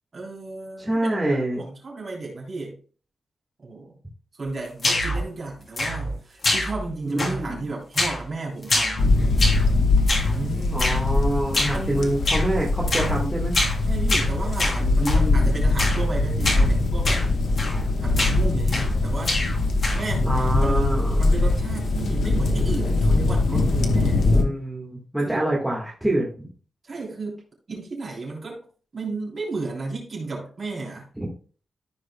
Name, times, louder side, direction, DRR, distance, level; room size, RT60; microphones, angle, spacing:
voice 1, 0.1-2.8 3.6-3.9 4.4-9.1 10.2-10.9 11.7-12.2 13.1-13.3 13.9-17.2 18.0-19.3 19.9-20.9 21.2-24.2 25.2-25.4 26.8-27.4 27.7-28.6 28.9-31.1, right 3 dB, 35° right, -3 dB, 3.3 m, -33 dB
voice 2, 0.8-1.6 7.0-7.7 10.7-13.5 14.8-15.6 20.3-21.2 24.3-26.5 31.2-31.3, right 1 dB, 5° right, -4 dB, 1.5 m, -26 dB
sound 1, 4.8-5.3 5.8-6.2 6.4-6.9 7.2-7.6 8.0-8.3 8.6-9.7 10.1-10.4 10.8-11.0 11.5-11.8 12.3-12.5 12.9-13.1 13.5-13.8 14.1-15.2 15.8-16.1 16.4-16.7 17.0-17.3 17.6-17.9 18.2-19.0 19.2-20.1, left 2 dB, 40° left, 2.8 m, -25 dB
sound 2, 9.0-24.4, left 2 dB, 70° left, 1.1 m, -22 dB
15.0 x 5.0 x 2.2 m, 0.40 s
wide cardioid pair, 165°, 0 cm